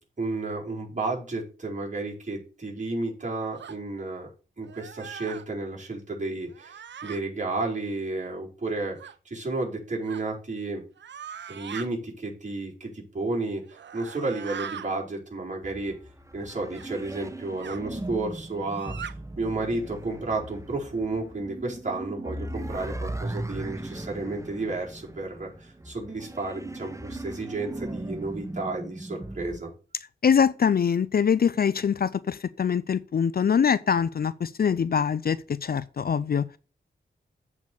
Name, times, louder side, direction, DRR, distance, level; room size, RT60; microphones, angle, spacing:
voice 1, 0.2-4.3 4.6-9.0 9.2-10.8 11.5-13.6 13.9-15.9 16.3-18.9 19.4-29.7, right 2 dB, 40° right, 4.6 m, -32 dB
sound 1, 3.6-3.8 4.6-5.5 6.5-7.2 9.0-9.2 10.1-10.3 11.0-11.9 13.6-14.9 16.7-16.9 17.6-17.8 18.6-19.1, right 7 dB, 65° right, 0.7 m, -40 dB
sound 2, 15.6-29.6, right 1 dB, 15° right, 1.0 m, -38 dB
voice 2, 30.2-36.4, left 7 dB, 50° left, 0.5 m, -24 dB
8.2 x 4.7 x 6.8 m
cardioid pair, 50°, 20 cm